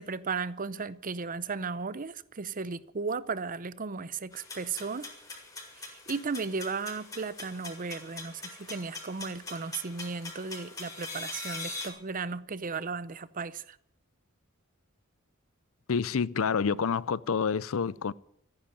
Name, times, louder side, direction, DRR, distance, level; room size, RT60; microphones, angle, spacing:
voice 1, 0.0-5.1 5.9-13.8, right 4 dB, 40° right, 0.7 m, -35 dB
sound 1, 4.3-11.9, left 3 dB, 20° left, 5.2 m, -42 dB
voice 2, 15.9-18.1, left 6 dB, 75° left, 0.5 m, -28 dB
14.5 x 10.5 x 9.0 m
head